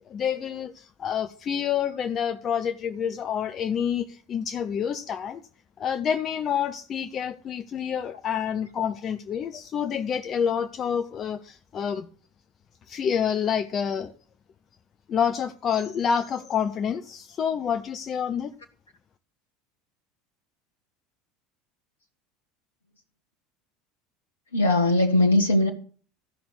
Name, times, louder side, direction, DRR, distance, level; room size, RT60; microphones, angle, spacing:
voice 1, 0.0-5.4 5.8-12.1 12.9-14.1 15.1-18.5, left 8 dB, 35° left, 0.8 m, -28 dB
voice 2, 24.5-25.7, left 1 dB, 80° left, 1.1 m, -20 dB
14.5 x 6.0 x 8.3 m
figure-of-eight pair, 70°, 0 cm